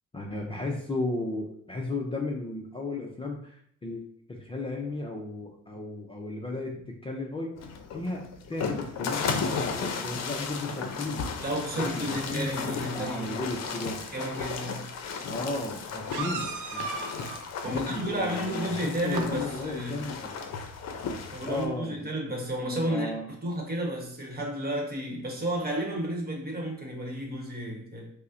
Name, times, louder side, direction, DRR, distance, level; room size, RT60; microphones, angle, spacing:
voice 1, 0.1-12.5 12.9-14.0 15.3-16.9 17.6-20.3 21.4-22.0 22.8-23.3, left 2 dB, 20° left, 0.5 m, -35 dB
sound 1, 7.6-21.7, left 5 dB, 60° left, 0.6 m, -35 dB
voice 2, 11.4-13.3 14.1-14.9 17.6-20.0 21.3-23.1 23.4-28.1, right 1 dB, 30° right, 1.1 m, -32 dB
sound 2, 14.9-15.0 16.1-17.5 19.0-19.3 21.4-21.5 21.8-21.9, right 4 dB, 80° right, 0.7 m, -35 dB
5.2 x 2.1 x 2.6 m
cardioid pair, 90°, 30 cm